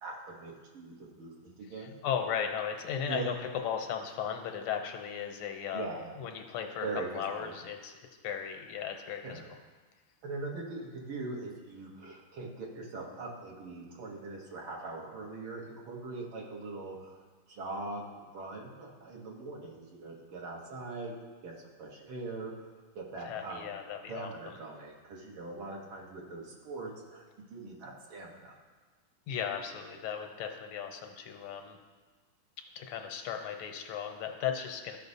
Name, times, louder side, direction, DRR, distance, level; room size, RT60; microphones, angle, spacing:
voice 1, 0.0-1.9 3.1-3.3 5.7-6.2 6.8-7.5 9.2-9.5 10.2-17.2 17.5-21.1 21.4-21.5 21.8-22.7 23.0-23.7 24.1-27.2 27.5-28.6, right 3 dB, 70° right, -2 dB, 2.0 m, -41 dB
voice 2, 1.8-3.3 3.6-5.9 6.2-6.9 7.1-8.0 8.2-9.4 23.2-24.3 29.3-31.8 32.8-35.0, left 8 dB, 90° left, 4 dB, 1.6 m, -36 dB
13.0 x 5.6 x 2.7 m, 1.4 s
omnidirectional pair, 2.4 m